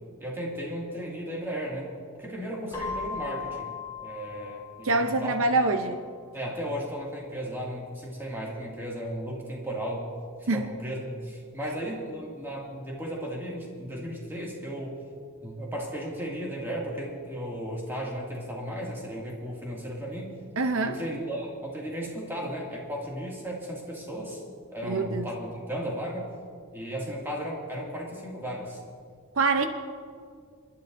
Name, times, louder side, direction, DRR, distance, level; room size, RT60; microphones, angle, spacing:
voice 1, 0.2-1.9 2.2-3.7 4.0-5.4 6.3-10.1 10.4-15.0 15.4-20.3 20.8-24.4 24.7-26.3 26.7-28.8, equal, 10° right, -4 dB, 2.2 m, -35 dB
Keyboard (musical), 2.7-5.4, left 5 dB, 15° left, 4.4 m, -38 dB
voice 2, 4.8-6.0 10.5-10.6 20.6-21.0 24.8-25.3 29.3-29.7, right 3 dB, 65° right, 7 dB, 0.7 m, -25 dB
27.0 x 12.0 x 2.7 m, 2.2 s
head